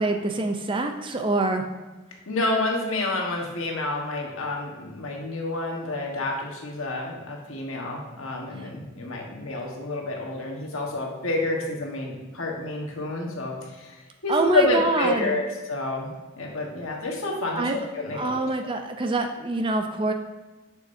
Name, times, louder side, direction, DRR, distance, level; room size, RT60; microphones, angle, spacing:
voice 1, 0.0-1.6 8.5-8.7 14.3-15.4 17.6-17.9 18.1-20.1, right 2 dB, 25° right, 5 dB, 0.4 m, -25 dB
voice 2, 2.3-13.9 14.2-17.7 17.9-18.7, left 2 dB, 85° left, 0 dB, 1.3 m, -29 dB
6.6 x 6.4 x 2.7 m, 1.2 s
head